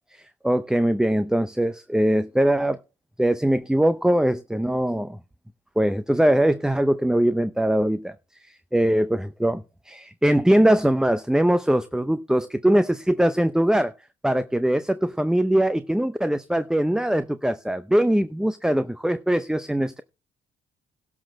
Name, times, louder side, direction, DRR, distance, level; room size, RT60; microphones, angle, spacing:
voice 1, 0.1-2.8 3.2-5.2 5.8-8.2 8.4-13.9 14.2-20.0, right 1 dB, 5° right, 0.5 m, -22 dB
12.0 x 6.0 x 6.3 m
cardioid pair, 90°, 20 cm